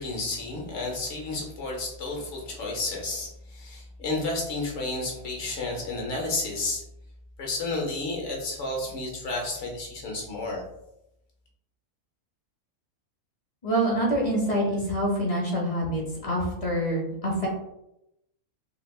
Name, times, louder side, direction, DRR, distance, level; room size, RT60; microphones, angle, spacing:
voice 1, 0.0-6.8 7.4-10.6, left 2 dB, 60° left, -1 dB, 1.1 m, -31 dB
voice 2, 13.6-17.5, right 1 dB, 35° left, -2 dB, 0.6 m, -26 dB
3.4 x 3.3 x 2.3 m, 0.85 s
omnidirectional pair, 1.5 m